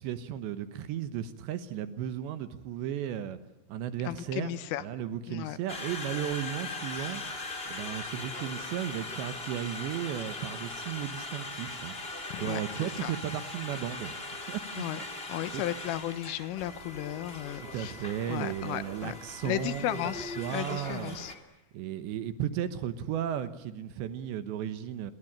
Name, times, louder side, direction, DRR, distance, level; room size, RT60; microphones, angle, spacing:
voice 1, 0.0-3.4 3.7-4.5 4.8-7.2 7.7-12.0 12.4-14.2 14.5-14.6 15.0-15.1 15.5-15.6 17.5-20.0 20.4-21.3 21.7-25.1, right 10 dB, 70° right, 12 dB, 3.1 m, -35 dB
voice 2, 4.1-4.8 5.3-5.6 12.3-12.6 13.0-13.1 14.8-15.0 15.3-17.9 18.3-19.2 19.5-21.3, left 13 dB, 80° left, 14 dB, 3.7 m, -34 dB
Conversation, 5.7-21.3, left 2 dB, 15° left, 2.8 m, -40 dB
27.5 x 22.5 x 8.8 m, 0.98 s
omnidirectional pair, 5.9 m